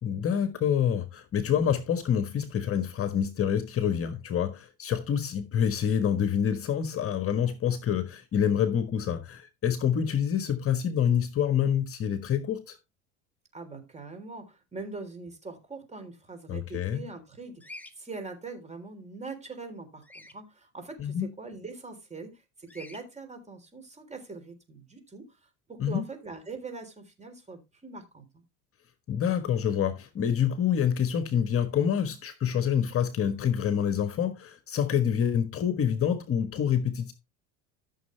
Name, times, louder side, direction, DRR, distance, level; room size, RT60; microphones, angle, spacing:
voice 1, 0.0-12.8 16.5-17.0 21.0-21.3 25.8-26.0 29.1-37.1, left 8 dB, 35° left, 1.4 m, -27 dB
voice 2, 13.5-17.6 18.0-25.3 25.7-28.4, right 3 dB, 20° right, 3.7 m, -42 dB
Bird vocalization bird call bird song, 17.6-17.9 20.0-20.4 22.7-23.0, left 2 dB, 5° left, 1.4 m, -45 dB
13.5 x 6.5 x 3.3 m
supercardioid pair, 100°, 37 cm